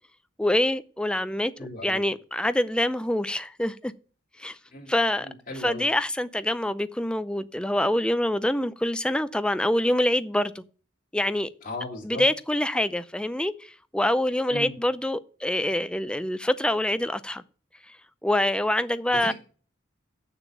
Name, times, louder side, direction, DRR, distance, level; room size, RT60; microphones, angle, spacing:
voice 1, 0.4-1.5 1.8-3.9 4.4-4.6 4.9-5.3 5.6-10.6 11.1-11.5 12.0-17.4 18.2-19.3, left 1 dB, 5° left, 0.4 m, -25 dB
voice 2, 1.6-2.0 4.7-5.8 11.6-12.2 14.5-14.7 19.2-19.3, left 1 dB, 40° left, 3.0 m, -37 dB
7.3 x 6.6 x 7.3 m
head